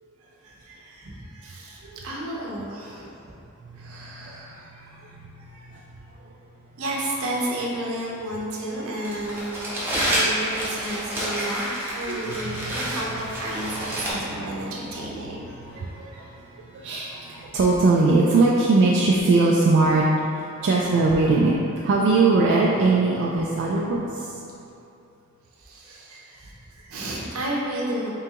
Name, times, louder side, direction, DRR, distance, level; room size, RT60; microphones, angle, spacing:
voice 1, 0.4-3.3 3.8-5.7 6.8-11.6 11.9-16.3 20.8-21.1 25.6-28.1, right 1 dB, 70° right, -4 dB, 0.7 m, -33 dB
voice 2, 3.6-4.5 5.1-5.8 9.0-9.1 9.9-10.0 12.1-12.8 15.0-15.3 15.6-16.3 16.6-20.1 20.3-24.4, right 3 dB, 55° right, -3 dB, 0.3 m, -22 dB
Crumpling crinkling, 9.0-14.1, equal, 10° right, 0.7 m, -28 dB
3.7 x 3.6 x 2.8 m, 2.7 s
head